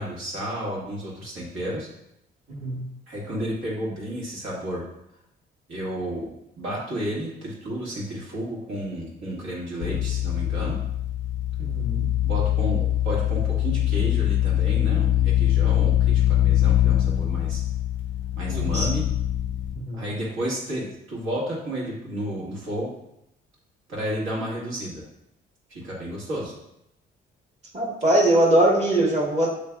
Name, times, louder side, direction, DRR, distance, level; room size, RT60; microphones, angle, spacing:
voice 1, 0.0-1.9 3.1-4.8 5.7-6.3 6.6-10.8 12.2-17.6 18.4-19.0 19.9-22.9 23.9-25.0 25.7-26.5, equal, 80° right, -4 dB, 1.7 m, -31 dB
voice 2, 2.5-2.8 11.6-12.0 18.5-18.9 19.8-20.0 27.7-29.5, right 1 dB, 35° right, -1 dB, 1.3 m, -22 dB
sound 1, 9.8-19.7, left 13 dB, 70° left, 0.4 m, -23 dB
6.5 x 3.3 x 2.3 m, 0.80 s
cardioid pair, 90°, 20 cm